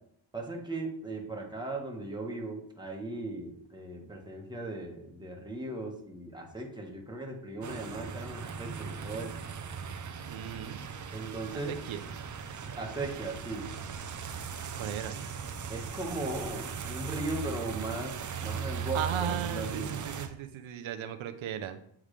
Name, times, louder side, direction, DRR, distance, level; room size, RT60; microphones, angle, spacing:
voice 1, 0.3-9.3 11.1-11.8 12.8-13.7 15.7-18.1 18.4-19.9, right 2 dB, 10° right, 0 dB, 1.5 m, -37 dB
sound 1, 7.6-20.3, right 7 dB, 40° right, 0.7 m, -38 dB
voice 2, 10.2-10.8 11.5-11.6 11.9-12.0 14.8-15.2 18.6-21.8, right 9 dB, 70° right, 8 dB, 0.8 m, -36 dB
8.5 x 3.6 x 3.3 m, 0.67 s
cardioid pair, 75°, 49 cm